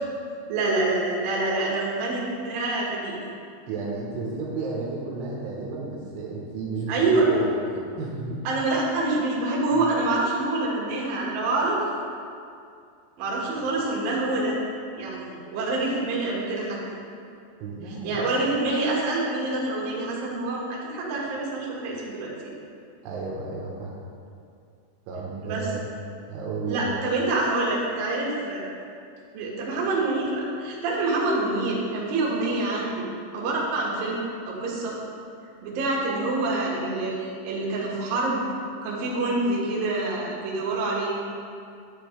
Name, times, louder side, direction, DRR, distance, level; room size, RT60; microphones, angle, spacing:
voice 1, 0.5-3.2 6.9-7.3 8.4-11.8 13.2-14.6 15.0-16.8 17.9-22.3 25.4-25.7 26.7-28.7 29.3-35.0 35.6-38.4 38.8-41.1, right 2 dB, 60° right, -5 dB, 2.9 m, -26 dB
voice 2, 3.7-8.4 9.7-9.9 17.6-18.3 23.0-23.9 25.1-25.9 26.3-26.9, right 3 dB, 80° right, -3 dB, 3.4 m, -32 dB
9.8 x 9.1 x 3.3 m, 2.4 s
omnidirectional pair, 5.7 m